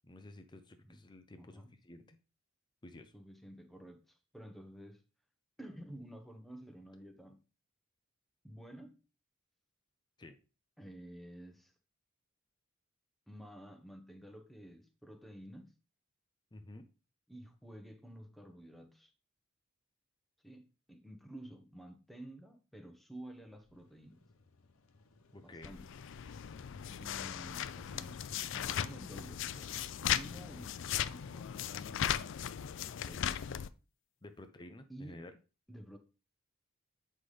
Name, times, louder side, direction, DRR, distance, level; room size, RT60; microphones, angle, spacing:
voice 1, 0.1-2.2 2.8-3.1 10.2-10.4 16.5-16.9 25.3-25.7 30.5-30.7 34.2-35.3, left 1 dB, 20° left, 0.6 m, -52 dB
voice 2, 1.4-1.7 3.1-5.0 5.6-7.4 8.4-9.0 10.8-11.7 13.3-15.7 17.3-19.1 20.4-24.2 25.4-25.9 26.9-32.3 33.0-33.5 34.9-35.1 35.7-36.0, right 1 dB, ahead, 0.9 m, -51 dB
Motorcycle / Engine starting, 23.4-29.3, left 3 dB, 90° left, 0.8 m, -62 dB
sound 1, 25.6-33.7, left 10 dB, 60° left, 0.4 m, -37 dB
8.1 x 5.4 x 3.3 m
head